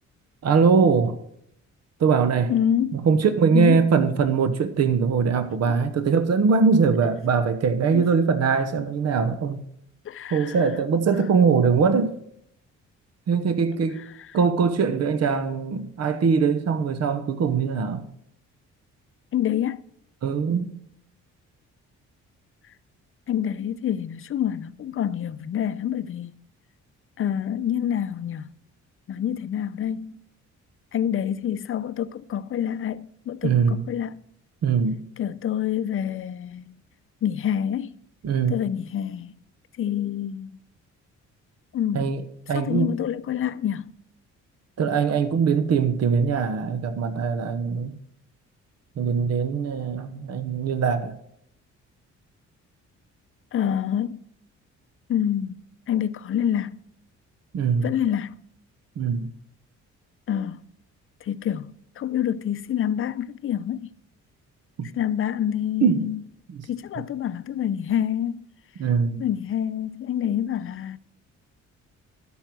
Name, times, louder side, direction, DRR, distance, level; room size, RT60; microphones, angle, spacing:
voice 1, 0.4-1.2 2.0-2.5 2.9-9.6 10.3-12.1 13.3-14.0 14.3-18.1 20.2-20.7 33.4-33.8 34.6-35.0 38.2-38.6 41.9-42.2 42.5-43.0 44.8-48.0 49.0-51.2 57.5-57.9 59.0-59.3 64.8-64.9 65.8-66.1 66.5-66.7 68.8-69.2, right 5 dB, 55° right, 1.0 m, -22 dB
voice 2, 2.5-3.0 3.5-3.8 5.7-5.8 7.9-8.0 10.0-10.7 14.0-14.3 19.3-19.8 22.6-22.7 23.3-26.4 27.2-28.5 29.1-30.2 30.9-34.2 35.2-36.8 37.2-38.0 38.5-39.3 39.7-40.6 41.7-42.1 42.5-43.9 53.5-54.2 55.1-56.8 57.8-58.4 60.3-60.6 61.2-63.9 64.9-66.2 66.7-68.4 69.2-71.0, left 10 dB, 45° left, 0.6 m, -27 dB
12.5 x 5.6 x 6.1 m
cardioid pair, 90°, 30 cm